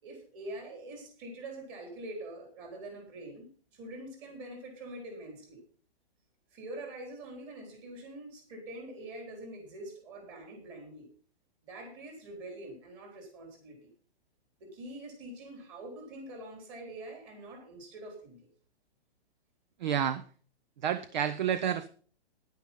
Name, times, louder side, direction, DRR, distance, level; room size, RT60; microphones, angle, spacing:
voice 1, 0.0-5.6 6.5-11.1 11.6-13.8 14.6-18.4, right 1 dB, 25° right, 2 dB, 3.8 m, -45 dB
voice 2, 19.8-20.2 20.8-21.9, right 9 dB, 45° right, 14 dB, 0.6 m, -29 dB
10.5 x 9.5 x 5.5 m, 0.43 s
hypercardioid pair, 160°, 32 cm